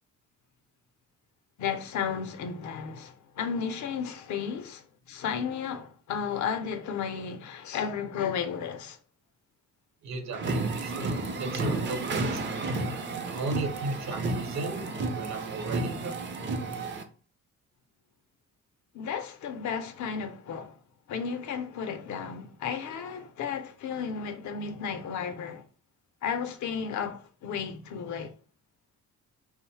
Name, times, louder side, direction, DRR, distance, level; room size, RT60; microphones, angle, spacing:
voice 1, 1.6-9.0 18.9-20.8 21.1-25.7 26.2-28.3, left 7 dB, 70° left, 0.5 m, -33 dB
voice 2, 10.0-12.9 13.2-16.2, right 3 dB, 65° right, 0.8 m, -36 dB
sound 1, 10.3-17.0, right 3 dB, 40° right, 0.5 m, -32 dB
2.6 x 2.0 x 3.1 m
cardioid pair, 90°, 30 cm